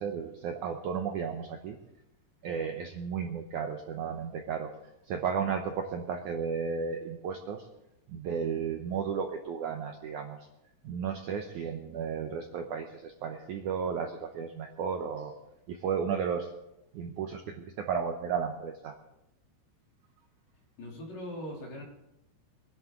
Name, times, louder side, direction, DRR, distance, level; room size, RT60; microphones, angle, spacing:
voice 1, 0.0-1.8 2.4-4.7 5.1-7.6 8.1-10.5 10.8-15.3 15.7-16.5 16.9-19.0, right 6 dB, 90° right, 3 dB, 1.7 m, -34 dB
voice 2, 20.8-21.8, equal, 45° left, -2 dB, 4.1 m, -40 dB
23.5 x 11.0 x 3.8 m, 0.89 s
omnidirectional pair, 4.8 m